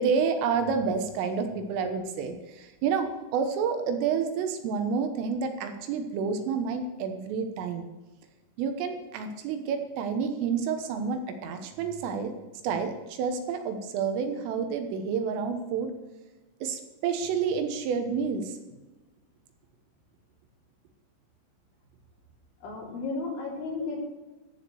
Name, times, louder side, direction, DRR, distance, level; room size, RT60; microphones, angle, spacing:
voice 1, 0.0-7.9 8.6-12.3 12.6-15.9 16.6-18.6, right 6 dB, 80° right, 6 dB, 3.6 m, -29 dB
voice 2, 22.6-24.0, left 3 dB, 65° left, -3 dB, 5.6 m, -33 dB
14.5 x 5.0 x 7.7 m, 1.1 s
omnidirectional pair, 6.0 m